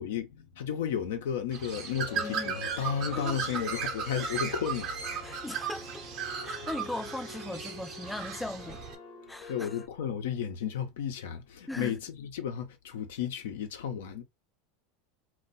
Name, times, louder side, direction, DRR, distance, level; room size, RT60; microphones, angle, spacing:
voice 1, 0.0-5.0 9.5-14.2, left 8 dB, 80° left, 0.7 m, -33 dB
Bird, 1.5-9.0, right 7 dB, 50° right, 0.8 m, -36 dB
sound 1, 1.9-9.9, left 6 dB, 50° left, 1.0 m, -46 dB
voice 2, 2.2-2.6 3.1-3.4 5.2-6.1 6.4-8.8 9.3-9.7 11.7-12.0, left 2 dB, 5° left, 0.4 m, -38 dB
2.3 x 2.2 x 3.9 m
hypercardioid pair, 105°, 0 cm